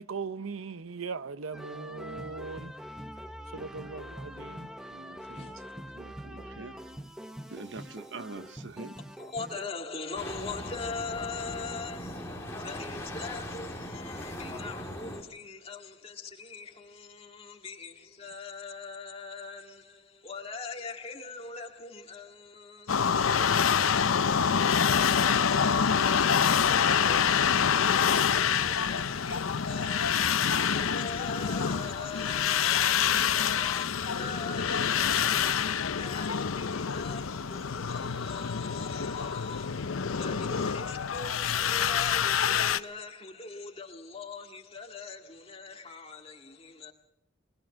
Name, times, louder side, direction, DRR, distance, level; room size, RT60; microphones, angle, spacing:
voice 1, 0.0-2.7 3.5-4.7, right 5 dB, 85° right, 0.7 m, -39 dB
sound 1, 1.5-9.7, equal, 5° right, 0.8 m, -44 dB
voice 2, 4.9-5.6 5.9-6.7 7.5-9.0, right 3 dB, 60° right, 0.9 m, -44 dB
voice 3, 9.2-46.9, left 4 dB, 30° left, 2.1 m, -42 dB
sound 2, 10.1-15.2, left 1 dB, 15° left, 2.5 m, -39 dB
sound 3, 22.9-42.8, left 7 dB, 90° left, 0.7 m, -26 dB
20.5 x 20.5 x 6.2 m
head